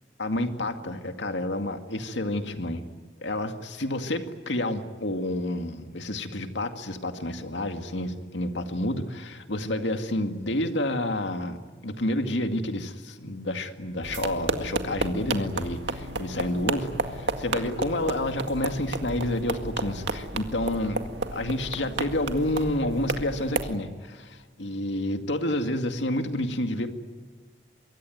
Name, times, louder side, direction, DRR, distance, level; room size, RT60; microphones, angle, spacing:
voice 1, 0.2-2.8 3.2-21.0 21.3-26.9, left 1 dB, 90° left, 6 dB, 2.2 m, -29 dB
sound 1, 14.0-23.7, right 2 dB, 80° right, 2.0 m, -32 dB
25.0 x 23.5 x 9.3 m, 1.5 s
head